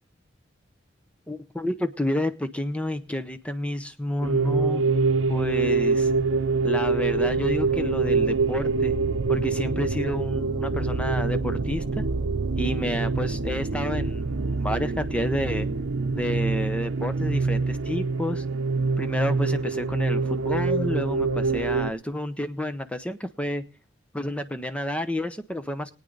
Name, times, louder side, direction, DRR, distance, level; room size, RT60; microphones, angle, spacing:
voice 1, 1.3-4.8 5.3-6.1 6.6-8.9 9.3-12.0 12.6-15.7 16.1-18.4 19.0-23.6 24.1-25.9, left 1 dB, 5° left, 10 dB, 0.7 m, -30 dB
sound 1, 4.2-21.9, right 3 dB, 80° right, 0.7 m, -25 dB
23.0 x 9.2 x 3.9 m, 0.35 s
head